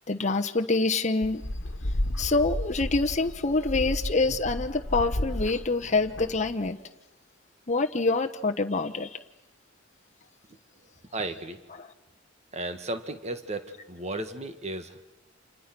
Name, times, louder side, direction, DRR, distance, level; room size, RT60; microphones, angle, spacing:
voice 1, 0.1-1.4 2.2-6.8 7.7-9.1 11.8-11.9, left 3 dB, 35° left, 4 dB, 1.1 m, -26 dB
sound 1, 1.2-6.7, left 1 dB, 70° left, 1.5 m, -33 dB
voice 2, 11.1-11.6 12.5-15.1, right 2 dB, 35° right, 9 dB, 1.8 m, -34 dB
30.0 x 28.0 x 6.1 m, 1.0 s
head